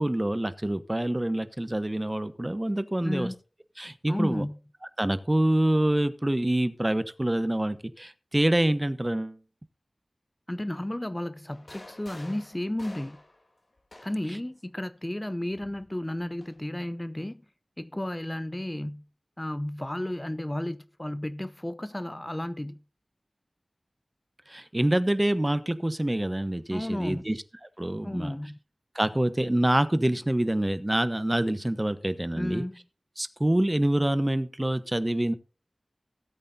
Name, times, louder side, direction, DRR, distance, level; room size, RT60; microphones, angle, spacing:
voice 1, 0.0-3.3 3.8-4.4 5.0-9.4 24.5-27.4 27.8-28.3 28.9-32.6 33.2-35.3, right 1 dB, 25° right, 1.0 m, -26 dB
voice 2, 3.0-3.4 4.1-4.6 10.5-13.2 14.0-17.4 17.8-19.0 19.4-22.8 26.7-27.3 28.0-28.6 32.4-32.8, left 1 dB, 20° left, 0.5 m, -33 dB
sound 1, 11.5-14.4 15.5-16.6, left 2 dB, 60° left, 2.5 m, -50 dB
18.0 x 8.5 x 2.7 m
wide cardioid pair, 45°, 0 cm